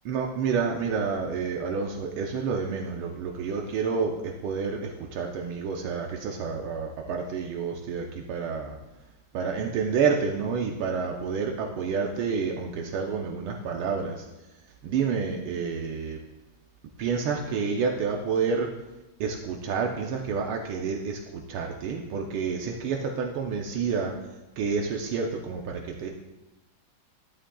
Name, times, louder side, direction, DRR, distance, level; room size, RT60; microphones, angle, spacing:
voice 1, 0.0-8.7 9.3-14.2 14.8-16.2 17.0-18.7 19.2-24.1 24.6-26.1, right 5 dB, 80° right, 1 dB, 1.7 m, -29 dB
12.5 x 11.0 x 2.3 m, 1.0 s
omnidirectional pair, 2.3 m